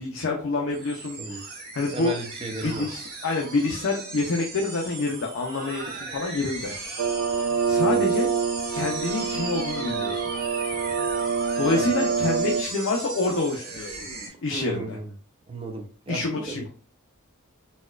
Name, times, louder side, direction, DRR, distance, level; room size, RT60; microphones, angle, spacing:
voice 1, 0.0-2.1 2.6-6.7 7.6-8.3 8.7-10.3 11.6-14.0 14.4-15.0 16.1-16.7, left 3 dB, 60° left, 0 dB, 0.5 m, -27 dB
sound 1, 0.7-14.3, right 3 dB, 45° right, 0.9 m, -38 dB
voice 2, 1.9-2.9 7.7-8.0 11.6-11.9 14.5-15.1 15.5-16.6, right 3 dB, 25° right, 4 dB, 0.5 m, -34 dB
sound 2, 7.0-12.6, right 5 dB, 80° right, 0.3 m, -26 dB
4.1 x 2.2 x 2.3 m, 0.40 s
head